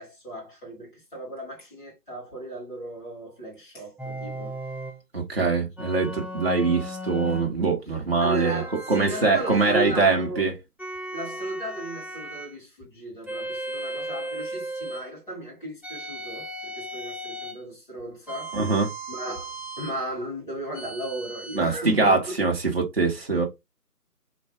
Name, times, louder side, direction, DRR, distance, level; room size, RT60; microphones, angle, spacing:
voice 1, 0.0-4.6 7.3-7.4 7.9-10.5 11.1-18.8 19.1-22.3, right 1 dB, 30° left, 1.8 m, -36 dB
sound 1, 4.0-5.0 5.8-7.5 8.2-10.1 10.8-12.5 13.3-15.1 15.8-17.6 18.3-20.0 20.7-21.6, right 1 dB, 5° right, 0.3 m, -36 dB
voice 2, 5.1-8.6 8.9-10.5 18.5-18.9 21.5-23.5, right 4 dB, 40° right, 0.6 m, -23 dB
3.1 x 2.2 x 2.7 m
figure-of-eight pair, 165°, 48 cm